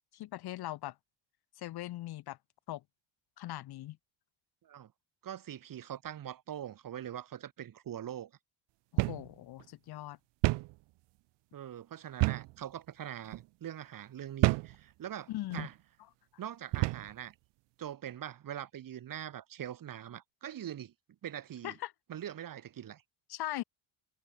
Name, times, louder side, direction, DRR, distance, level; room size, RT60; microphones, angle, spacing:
voice 1, 0.1-0.9 1.6-2.4 2.7-2.8 3.4-4.0 8.9-10.2 15.3-15.7 21.6-21.9 23.3-23.6, left 15 dB, 50° left, 1.1 m, -40 dB
voice 2, 5.2-8.3 11.5-15.7 16.4-17.3 17.8-20.9 21.2-21.7 22.1-23.0, right 10 dB, 45° right, 4.2 m, -43 dB
sound 1, 9.0-9.3 9.6-9.7 10.4-10.7 12.2-12.6 13.2-13.4 14.4-14.8 15.5-15.7 16.7-17.1, right 22 dB, 60° right, 0.6 m, -29 dB
cardioid pair, 145°, 48 cm